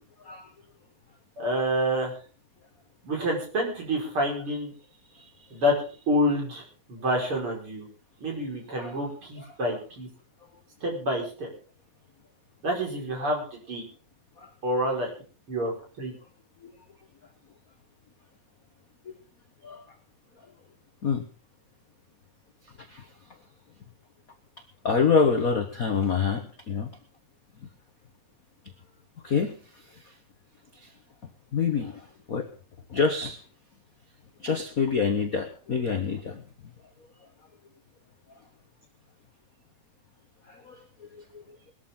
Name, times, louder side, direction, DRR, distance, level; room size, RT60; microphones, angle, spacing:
voice 1, 1.4-2.1 3.0-4.7 5.5-5.7 6.1-6.6 6.9-7.9 8.2-10.1 10.8-11.5 12.6-13.8 14.6-15.1 15.5-15.7 16.0-16.1, equal, 40° right, -1 dB, 5.7 m, -27 dB
voice 2, 5.1-5.5 8.7-9.0 14.4-14.5 16.6-16.7 19.6-19.9 21.0-21.2 22.8-23.1 24.8-26.9 29.2-30.1 30.7-30.9 31.5-32.5 32.9-33.4 34.4-36.4 38.3-38.4 40.5-41.4, left 5 dB, 55° left, 6 dB, 1.0 m, -27 dB
20.0 x 13.5 x 3.7 m, 0.38 s
omnidirectional pair, 3.5 m